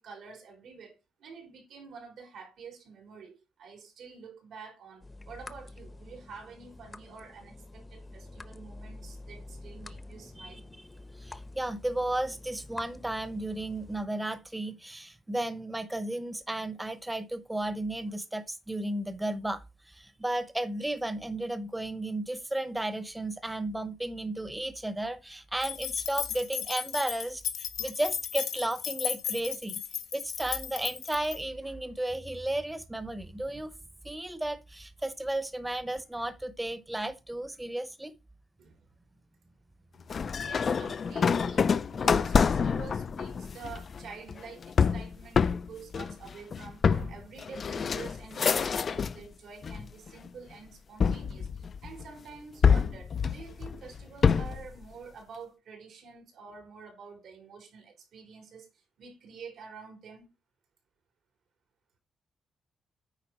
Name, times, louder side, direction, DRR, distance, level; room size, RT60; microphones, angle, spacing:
voice 1, 0.0-10.7 38.6-38.9 40.4-60.3, right 5 dB, 80° right, 4.1 m, -48 dB
sound 1, 5.0-14.1, left 2 dB, 20° left, 0.8 m, -47 dB
voice 2, 11.1-29.8 30.1-33.7 34.0-38.1, right 1 dB, 10° right, 0.9 m, -34 dB
sound 2, 25.6-31.4, left 9 dB, 85° left, 1.1 m, -35 dB
sound 3, 40.1-49.3 49.6-50.3 51.0-52.1 52.6-54.7, left 6 dB, 50° left, 0.4 m, -27 dB
9.0 x 5.0 x 4.4 m
cardioid pair, 105°, 0 cm